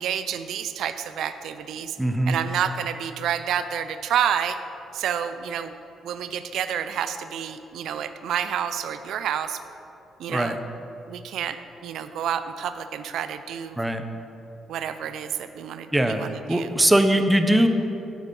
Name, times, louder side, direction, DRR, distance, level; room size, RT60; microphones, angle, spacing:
voice 1, 0.0-2.0 2.3-4.6 4.9-5.7 6.0-9.6 10.2-10.6 11.1-11.6 11.8-13.8 14.7-16.7, right 9 dB, 75° right, 10 dB, 0.4 m, -29 dB
voice 2, 2.0-2.4 10.3-10.6 13.8-14.0 15.9-16.2 16.5-17.7, right 1 dB, 10° right, 7 dB, 0.7 m, -20 dB
8.4 x 8.0 x 5.4 m, 2.8 s
cardioid pair, 90°, 0 cm